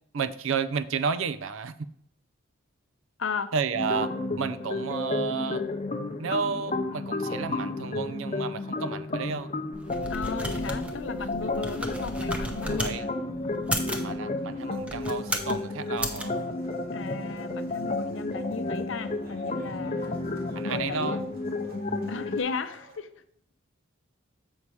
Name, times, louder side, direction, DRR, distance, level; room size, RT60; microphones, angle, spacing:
voice 1, 0.1-1.8 3.5-4.1 4.4-5.6 6.2-9.5 11.2-11.3 12.6-13.0 14.0-16.4 20.6-21.2, right 5 dB, 85° right, 13 dB, 0.5 m, -31 dB
voice 2, 3.2-3.5 10.1-13.1 16.9-20.1 20.6-21.2 22.1-23.1, left 4 dB, 70° left, 11 dB, 0.6 m, -35 dB
sound 1, 3.7-22.4, left 2 dB, 35° left, 0.6 m, -32 dB
sound 2, 9.7-13.0 13.6-14.1 14.8-15.6 16.0-16.2, equal, 5° right, 0.6 m, -34 dB
sound 3, 10.8-23.0, right 2 dB, 50° right, 1.5 m, -53 dB
7.2 x 5.5 x 4.7 m, 0.69 s
head